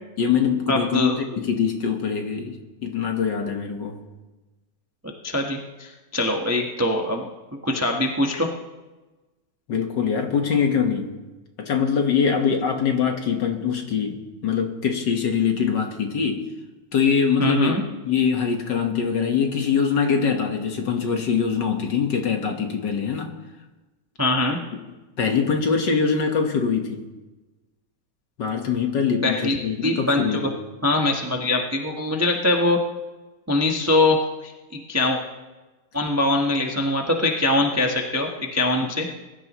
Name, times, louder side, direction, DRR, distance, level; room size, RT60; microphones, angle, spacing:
voice 1, 0.2-2.6 2.8-4.0 9.7-11.1 11.6-16.4 16.9-17.7 18.0-23.3 25.2-27.1 28.4-30.5, left 6 dB, 55° left, 3 dB, 1.9 m, -23 dB
voice 2, 0.7-1.2 5.2-7.2 7.6-8.5 17.4-17.8 24.2-24.6 29.2-29.6 29.8-30.5 30.8-32.8 33.5-35.2 35.9-39.1, left 2 dB, 10° right, 1 dB, 0.7 m, -22 dB
22.0 x 13.0 x 3.1 m, 1.1 s
omnidirectional pair, 2.4 m